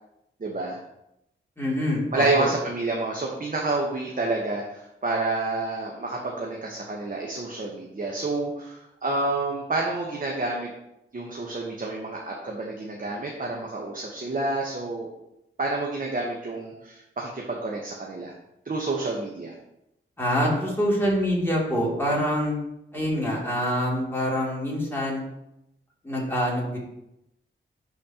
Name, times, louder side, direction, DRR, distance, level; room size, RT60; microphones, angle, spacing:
voice 1, 0.4-0.8 2.1-10.7 11.1-15.1 15.6-18.3 18.6-19.5, right 2 dB, 40° right, -1 dB, 1.1 m, -29 dB
voice 2, 1.6-2.5 20.2-22.5 22.9-25.2 26.0-26.8, equal, 10° left, -5 dB, 2.8 m, -25 dB
10.5 x 4.2 x 2.9 m, 0.83 s
cardioid pair, 65°, 21 cm